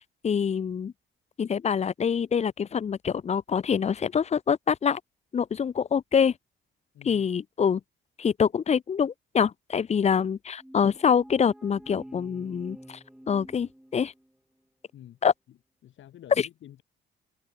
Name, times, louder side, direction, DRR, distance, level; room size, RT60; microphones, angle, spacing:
voice 1, 0.2-0.9 1.4-5.0 5.3-6.3 7.0-7.8 8.2-13.0 13.3-14.1 15.2-15.3 16.4-16.5, left 7 dB, 35° left, 0.5 m, -25 dB
voice 2, 6.9-7.3 14.9-15.2 15.5-15.6 15.8-16.8, left 12 dB, 75° left, 6.8 m, -48 dB
sound 1, 10.6-14.4, right 1 dB, 5° right, 4.5 m, -48 dB
cardioid pair, 90°, 20 cm